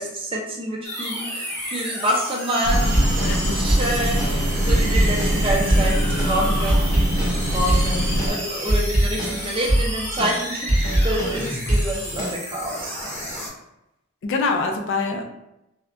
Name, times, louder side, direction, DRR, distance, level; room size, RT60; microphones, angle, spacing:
voice 1, 0.0-3.3 3.5-6.8 7.5-13.1 15.1-15.2, right 1 dB, 25° right, -1 dB, 0.5 m, -27 dB
sound 1, 0.8-13.5, equal, 10° left, 0.7 m, -32 dB
sound 2, 2.6-8.3, equal, 70° right, 0.7 m, -23 dB
sound 3, 2.7-12.3, right 1 dB, 85° left, 1.4 m, -23 dB
voice 2, 3.0-3.6 14.2-15.2, left 4 dB, 60° left, 3 dB, 0.4 m, -25 dB
3.3 x 2.2 x 2.5 m, 0.88 s
head